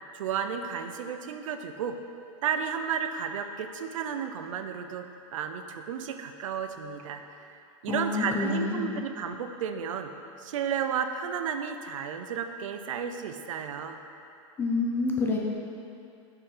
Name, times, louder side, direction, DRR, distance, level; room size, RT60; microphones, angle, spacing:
voice 1, 0.1-2.0 2.4-5.1 5.3-10.1 10.4-14.0, right 7 dB, 80° right, 7 dB, 0.5 m, -33 dB
voice 2, 7.9-8.9 14.6-15.4, left 3 dB, 15° left, -2 dB, 0.4 m, -28 dB
5.7 x 4.7 x 4.9 m, 2.7 s
supercardioid pair, 165°, 17 cm